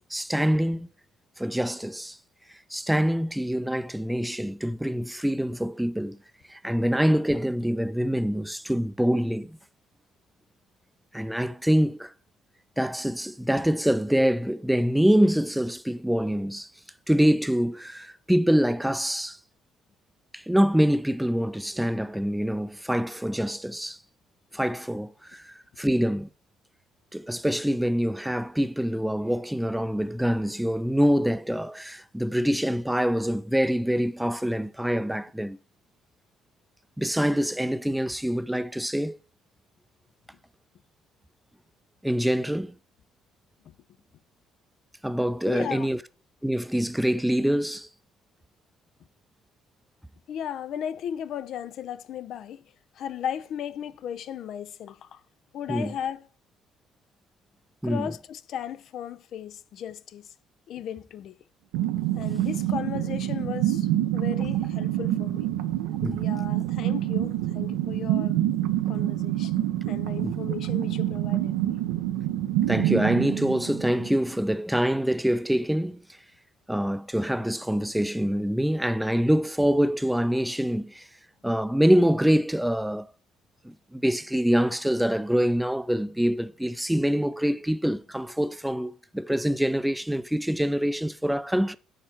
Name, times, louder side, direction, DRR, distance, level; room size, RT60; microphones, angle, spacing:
voice 1, 0.1-0.9 1.4-2.2 2.7-6.2 6.5-9.6 11.1-12.1 12.8-16.7 17.1-19.4 20.3-24.0 24.5-26.3 27.1-35.6 37.0-39.2 42.0-42.7 45.0-46.0 46.4-47.9 55.7-55.9 57.8-58.1 66.0-66.2 70.2-70.3 72.7-76.0 76.7-81.1 81.4-83.1 83.6-91.8, equal, 5° right, 0.5 m, -25 dB
voice 2, 45.4-45.9 50.3-52.6 53.0-55.2 55.5-56.3 57.8-60.3 60.7-61.4 62.2-65.5 66.2-68.4 68.9-69.5 69.9-71.7, left 9 dB, 60° left, 0.4 m, -36 dB
sound 1, 61.7-74.4, right 13 dB, 80° right, 0.5 m, -27 dB
6.7 x 4.3 x 5.8 m
hypercardioid pair, 55°, 0 cm